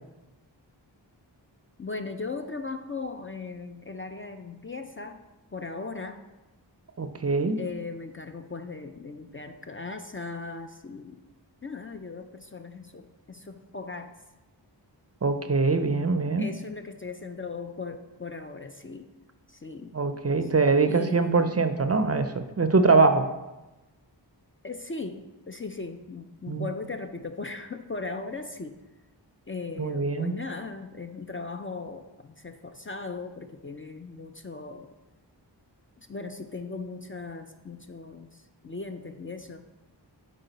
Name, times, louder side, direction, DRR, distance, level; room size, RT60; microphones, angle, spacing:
voice 1, 1.8-5.2 5.5-6.2 7.6-11.2 11.6-14.1 16.4-19.1 19.5-19.9 20.4-20.5 20.9-21.6 24.6-28.8 29.5-34.9 36.1-39.7, left 3 dB, 30° left, 6 dB, 0.4 m, -38 dB
voice 2, 7.0-7.6 15.2-16.5 19.9-23.3 26.5-26.7 29.8-30.3, right 4 dB, 35° right, 9 dB, 0.4 m, -23 dB
7.9 x 3.8 x 4.0 m, 1.0 s
wide cardioid pair, 40°, 44 cm